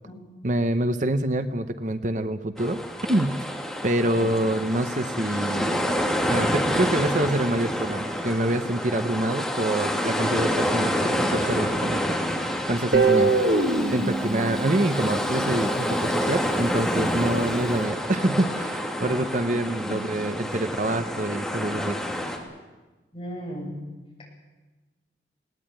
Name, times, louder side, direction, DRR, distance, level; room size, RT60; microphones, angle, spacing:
voice 1, 0.4-2.8 3.1-3.5 3.8-5.8 6.3-12.3 12.7-13.7 13.9-22.0, right 1 dB, 45° right, 10 dB, 0.8 m, -26 dB
sound 1, 2.6-22.4, equal, ahead, 2.7 m, -28 dB
voice 2, 4.0-4.3 19.5-19.6 19.9-20.0 23.1-23.7, equal, 30° left, -2 dB, 7.9 m, -36 dB
Guitar, 12.9-15.9, right 3 dB, 75° right, 1.9 m, -23 dB
20.0 x 18.5 x 9.1 m, 1.2 s
head